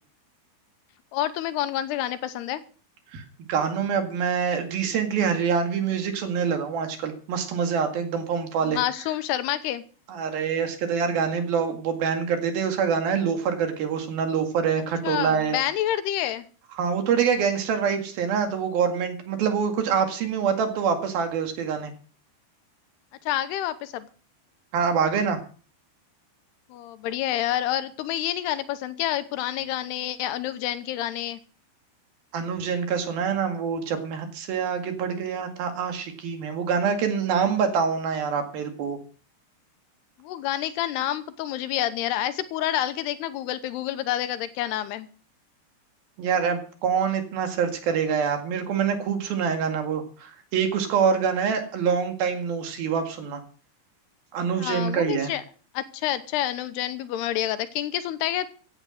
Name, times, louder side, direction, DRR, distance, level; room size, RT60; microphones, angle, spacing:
voice 1, 1.1-2.6 8.6-9.8 15.0-16.4 23.3-24.1 26.7-31.4 40.2-45.1 54.6-55.4 55.7-58.5, left 12 dB, 80° left, 13 dB, 2.9 m, -28 dB
voice 2, 3.1-8.8 10.1-15.6 16.8-21.9 24.7-25.4 32.3-39.0 46.2-53.4 54.3-55.3, right 6 dB, 65° right, 6 dB, 3.8 m, -25 dB
16.0 x 9.7 x 6.5 m, 0.41 s
omnidirectional pair, 4.7 m